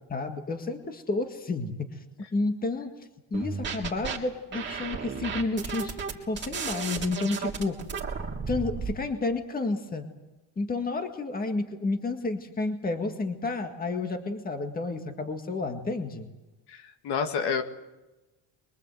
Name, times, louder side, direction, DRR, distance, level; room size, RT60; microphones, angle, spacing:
voice 1, 0.1-2.0 2.3-2.9 3.3-6.0 6.3-7.8 8.5-10.1 10.6-16.3, left 3 dB, 20° left, 6 dB, 1.9 m, -30 dB
sound 1, 3.3-4.2 4.5-8.9, right 5 dB, 25° right, 3.3 m, -33 dB
voice 2, 16.7-17.6, left 6 dB, 60° left, 7 dB, 2.1 m, -29 dB
24.0 x 23.5 x 7.9 m, 1.1 s
cardioid pair, 165°, 45 cm